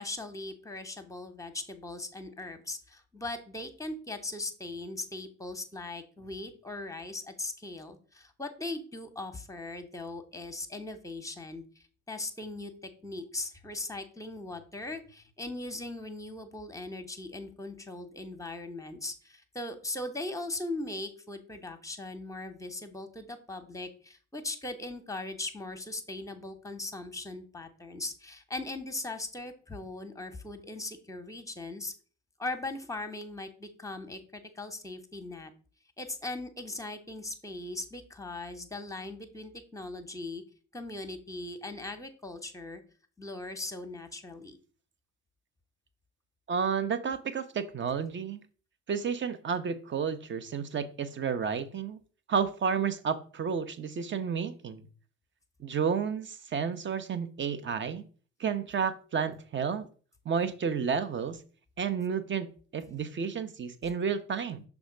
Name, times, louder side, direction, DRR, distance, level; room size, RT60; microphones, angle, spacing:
voice 1, 0.0-31.9 32.4-35.5 36.0-40.4 40.7-42.8 43.2-44.6, left 2 dB, 10° left, 7 dB, 1.1 m, -39 dB
voice 2, 46.5-48.4 48.9-52.0 52.3-54.8 55.6-58.0 58.4-59.9 60.2-61.4 61.8-62.5 62.7-64.6, right 6 dB, 30° right, 11 dB, 0.8 m, -31 dB
6.1 x 3.5 x 5.1 m, 0.40 s
hypercardioid pair, 65°, 39 cm